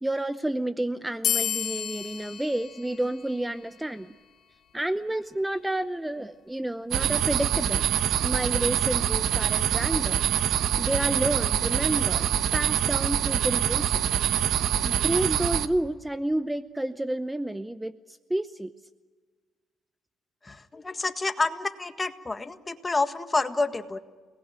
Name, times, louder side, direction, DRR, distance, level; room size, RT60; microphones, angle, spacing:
voice 1, 0.0-4.1 4.7-7.8 8.2-10.2 10.8-14.1 14.8-18.7, right 1 dB, 10° right, 12 dB, 0.7 m, -30 dB
sound 1, 1.2-4.3, left 10 dB, 75° left, 3.2 m, -32 dB
sound 2, 6.9-15.7, right 10 dB, 80° right, 1.2 m, -25 dB
voice 2, 20.4-24.0, left 3 dB, 25° left, 8 dB, 1.7 m, -28 dB
29.5 x 19.5 x 8.9 m, 1.4 s
cardioid pair, 90°, 0 cm